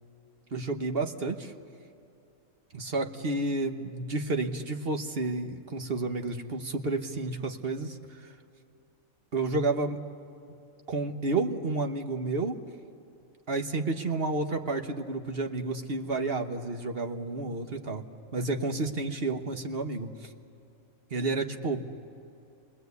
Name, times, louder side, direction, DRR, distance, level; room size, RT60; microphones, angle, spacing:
voice 1, 0.5-1.5 2.7-8.3 9.3-10.0 10.9-12.6 13.5-18.0 18.3-20.3 21.1-21.9, right 3 dB, 50° right, 5 dB, 1.4 m, -31 dB
29.5 x 21.0 x 8.3 m, 2.6 s
omnidirectional pair, 1.3 m